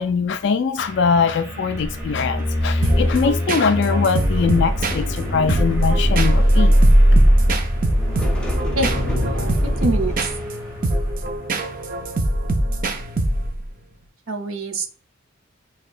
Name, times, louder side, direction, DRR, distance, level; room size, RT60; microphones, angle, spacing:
voice 1, 0.0-6.8, left 5 dB, 55° left, 0.4 m, -21 dB
sound 1, 0.7-12.2, left 1 dB, 15° right, 2.1 m, -36 dB
sound 2, 1.8-12.1 12.4-12.7, equal, 5° left, 0.8 m, -20 dB
sound 3, 2.8-13.7, right 1 dB, 45° right, 0.5 m, -24 dB
voice 2, 8.8-10.2 14.3-15.0, right 2 dB, 80° right, 0.7 m, -26 dB
6.4 x 2.7 x 2.4 m
head